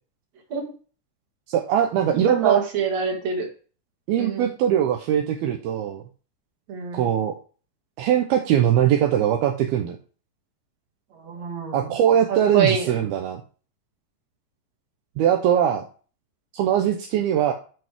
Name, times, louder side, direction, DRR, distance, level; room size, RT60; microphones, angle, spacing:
voice 1, 1.5-2.6 4.1-6.0 6.9-7.3 8.0-10.0 11.7-13.4 15.2-15.8 16.5-17.5, right 10 dB, 80° right, 3 dB, 2.3 m, -21 dB
voice 2, 2.3-3.5 4.2-4.5 6.7-7.1 11.1-12.0 12.3-13.0, right 7 dB, 45° right, 2 dB, 2.7 m, -25 dB
13.5 x 5.3 x 3.5 m, 0.39 s
omnidirectional pair, 5.3 m